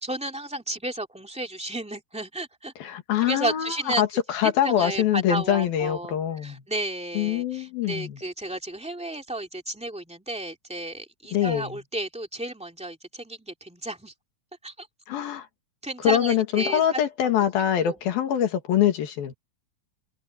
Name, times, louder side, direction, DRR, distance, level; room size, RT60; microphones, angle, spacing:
voice 1, 0.0-2.7 3.3-4.0 4.4-14.1 14.6-14.9 15.8-16.8 17.8-17.9, right 1 dB, 5° right, 1.5 m, -32 dB
voice 2, 2.8-6.6 7.2-8.2 11.3-11.7 15.1-15.5 16.0-19.3, left 10 dB, 75° left, 3.9 m, -24 dB
omnidirectional pair, 4.3 m